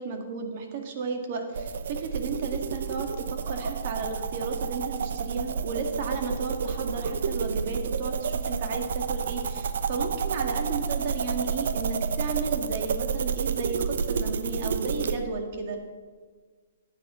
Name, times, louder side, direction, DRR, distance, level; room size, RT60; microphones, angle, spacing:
voice 1, 0.0-15.8, right 4 dB, 50° right, 4 dB, 1.8 m, -33 dB
sound 1, 1.5-15.2, right 6 dB, 70° right, 0.8 m, -30 dB
14.0 x 9.1 x 3.8 m, 1.5 s
hypercardioid pair, 145°, 0 cm